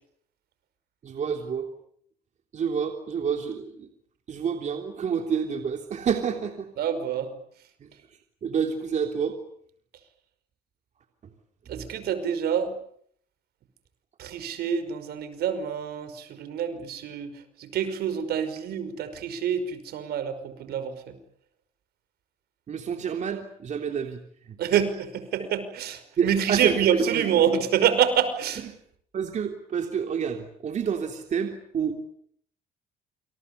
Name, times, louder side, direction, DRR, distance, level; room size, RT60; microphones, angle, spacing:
voice 1, 1.0-1.7 2.5-3.9 4.3-6.7 7.8-7.9 8.4-9.4 11.7-11.9 22.7-24.2 24.4-24.6 25.4-25.5 26.2-27.3 28.6-28.8 29.1-32.0, right 7 dB, 45° right, 4 dB, 3.3 m, -28 dB
voice 2, 6.8-7.3 11.7-12.7 14.2-17.3 17.6-21.2 24.6-28.7, right 8 dB, 70° right, 12 dB, 5.5 m, -27 dB
28.5 x 27.5 x 6.9 m, 0.64 s
cardioid pair, 110°, 17 cm